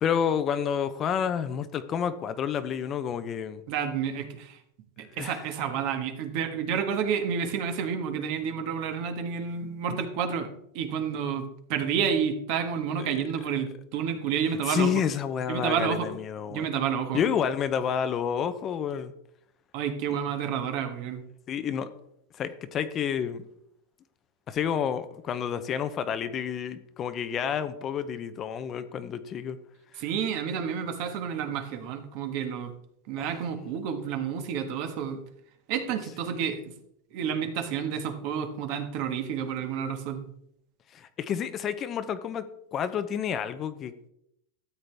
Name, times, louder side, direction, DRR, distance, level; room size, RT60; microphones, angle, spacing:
voice 1, 0.0-3.6 5.2-5.4 14.5-16.7 17.1-19.1 21.5-21.9 22.4-23.4 24.5-29.6 33.2-33.3 40.9-42.5 42.7-44.1, left 8 dB, 30° left, 11 dB, 0.7 m, -29 dB
voice 2, 3.7-4.6 5.0-10.5 10.7-14.9 15.5-16.1 16.5-17.2 19.7-21.2 29.9-32.7 33.1-35.2 35.7-36.7 37.1-40.3, right 7 dB, 55° right, 6 dB, 1.5 m, -30 dB
13.0 x 8.3 x 3.4 m, 0.75 s
supercardioid pair, 140°, 0 cm